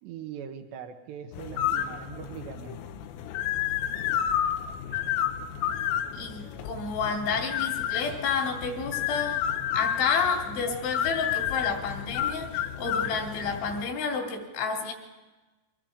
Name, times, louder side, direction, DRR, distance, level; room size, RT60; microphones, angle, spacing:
voice 1, 0.0-2.8, right 8 dB, 70° right, 5 dB, 2.9 m, -41 dB
sound 1, 1.3-13.8, left 10 dB, 90° left, 3.7 m, -31 dB
voice 2, 6.1-9.4 9.7-14.9, left 5 dB, 70° left, 2 dB, 5.4 m, -30 dB
30.0 x 24.0 x 5.1 m, 1.2 s
omnidirectional pair, 5.6 m